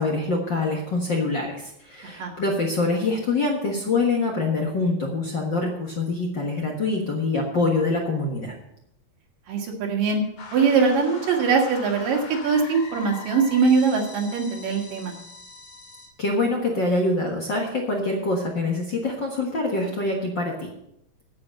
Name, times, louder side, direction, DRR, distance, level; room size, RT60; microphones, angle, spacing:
voice 1, 0.0-8.5 16.2-20.7, left 3 dB, 45° left, -1 dB, 1.6 m, -25 dB
voice 2, 9.5-10.2 10.5-15.1, right 5 dB, 75° right, 1 dB, 3.6 m, -22 dB
sound 1, 10.4-16.1, left 4 dB, 60° left, 3.8 m, -41 dB
9.7 x 8.4 x 7.6 m, 0.79 s
omnidirectional pair, 3.9 m